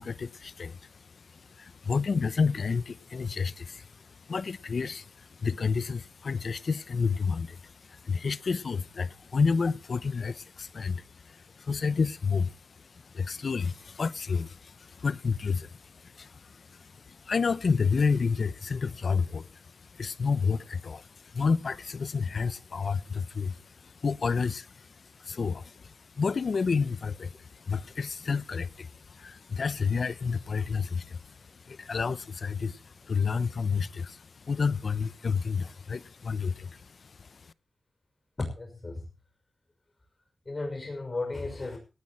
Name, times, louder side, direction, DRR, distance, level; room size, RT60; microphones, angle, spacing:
voice 1, 0.0-37.5, left 5 dB, 70° left, 0.8 m, -30 dB
voice 2, 38.4-39.1 40.4-41.8, left 2 dB, 45° left, 6.0 m, -34 dB
18.0 x 6.3 x 8.8 m
cardioid pair, 60°, 0 cm